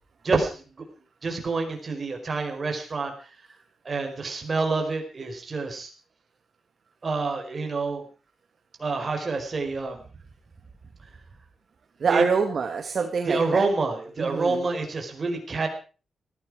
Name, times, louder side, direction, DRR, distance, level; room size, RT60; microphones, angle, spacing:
voice 1, 0.2-0.6 1.2-3.1 3.8-5.9 7.0-8.0 8.8-10.0 12.1-12.2 13.3-15.7, right 3 dB, 30° right, 4 dB, 4.7 m, -27 dB
voice 2, 12.0-13.6 14.2-14.6, right 5 dB, 45° right, 5 dB, 1.9 m, -25 dB
18.5 x 15.0 x 4.9 m, 0.37 s
wide cardioid pair, 155°, 0 cm